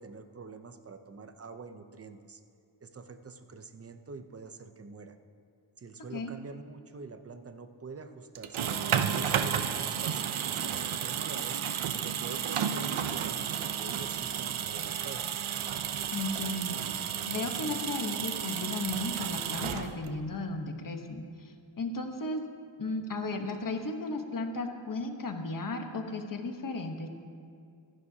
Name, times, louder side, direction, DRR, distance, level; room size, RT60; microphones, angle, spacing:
voice 1, 0.0-2.4 2.8-5.1 5.8-8.7 9.0-11.6 12.0-15.4, right 4 dB, 30° right, 8 dB, 0.7 m, -45 dB
sound 1, 8.4-20.3, right 8 dB, 90° right, 0.8 m, -32 dB
voice 2, 16.1-22.4 22.8-27.1, left 2 dB, 45° left, 4 dB, 1.2 m, -35 dB
24.5 x 11.5 x 2.8 m, 2.4 s
wide cardioid pair, 145°, 47 cm